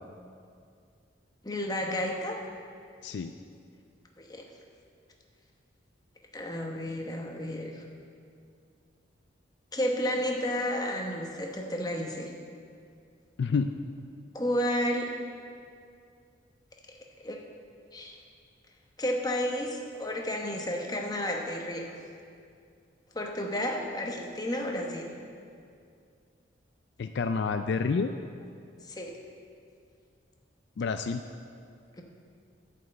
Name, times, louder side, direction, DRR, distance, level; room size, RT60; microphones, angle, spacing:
voice 1, 1.4-2.4 4.2-4.4 6.3-7.8 9.7-12.3 14.3-15.1 17.2-17.4 17.9-18.2 19.0-21.9 23.1-25.1 28.8-29.1, left 1 dB, 20° left, 1 dB, 1.0 m, -31 dB
voice 2, 13.4-13.7 27.0-28.1 30.8-31.2, left 5 dB, 60° left, 8 dB, 0.3 m, -28 dB
11.0 x 5.5 x 7.7 m, 2.3 s
head